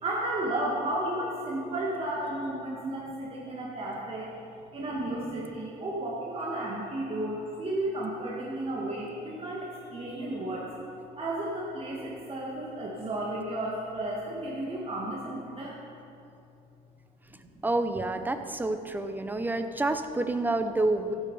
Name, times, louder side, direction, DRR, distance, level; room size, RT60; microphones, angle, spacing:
voice 1, 0.0-4.3 4.7-10.7 11.1-15.8 17.3-17.7 19.3-19.4, right 1 dB, 35° right, -4 dB, 2.1 m, -33 dB
voice 2, 17.6-21.1, right 2 dB, 10° right, 8 dB, 0.8 m, -28 dB
15.0 x 8.2 x 5.6 m, 2.7 s
cardioid pair, 110°, 17 cm